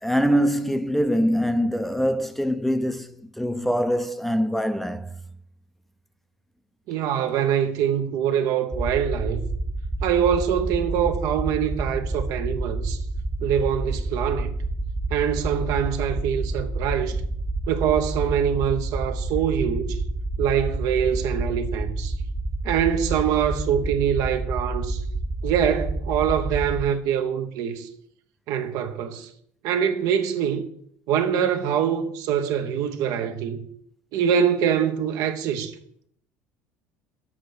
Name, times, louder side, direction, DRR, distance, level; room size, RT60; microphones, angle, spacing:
voice 1, 0.0-5.1, equal, ahead, 0.6 m, -23 dB
voice 2, 6.9-9.4 10.0-13.0 13.4-14.6 15.1-17.2 17.7-20.0 20.4-22.2 22.6-25.0 25.4-27.9 28.5-29.3 29.6-30.7 31.1-33.6 34.1-35.7, right 8 dB, 65° right, 0.9 m, -24 dB
sound 1, 8.7-26.9, right 2 dB, 15° right, 1.0 m, -29 dB
7.2 x 3.9 x 6.5 m
hypercardioid pair, 75°, 7 cm